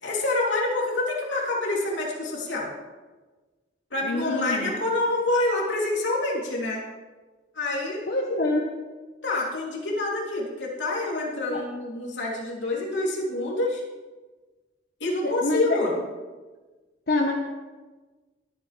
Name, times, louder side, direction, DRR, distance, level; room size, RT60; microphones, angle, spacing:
voice 1, 0.0-2.7 3.9-6.8 7.5-8.0 9.2-13.8 15.0-15.9, left 2 dB, 80° left, -3 dB, 3.2 m, -27 dB
voice 2, 4.0-4.7 8.1-8.7 11.5-11.6 15.2-15.8 17.1-17.3, left 2 dB, 60° left, -1 dB, 1.3 m, -26 dB
22.5 x 9.0 x 3.4 m, 1.3 s
head